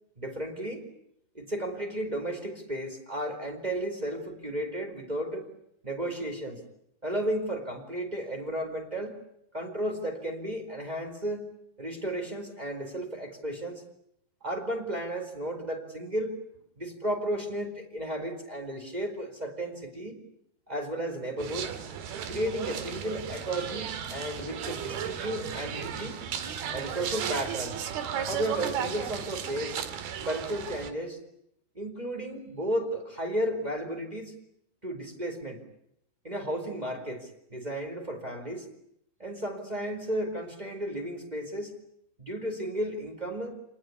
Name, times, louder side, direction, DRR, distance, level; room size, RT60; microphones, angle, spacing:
voice 1, 0.2-0.8 1.3-5.5 5.8-6.6 7.0-9.2 9.5-11.5 11.8-13.8 14.4-16.4 16.8-20.2 20.7-21.8 22.3-26.2 26.7-27.8 28.3-29.8 30.3-31.2 31.7-34.3 34.8-35.6 36.2-38.7 39.2-41.7 42.2-43.6, right 1 dB, 10° right, 4 dB, 4.4 m, -33 dB
sound 1, 21.4-30.9, right 8 dB, 90° right, 3.8 m, -35 dB
29.0 x 20.0 x 9.9 m, 0.76 s
omnidirectional pair, 4.3 m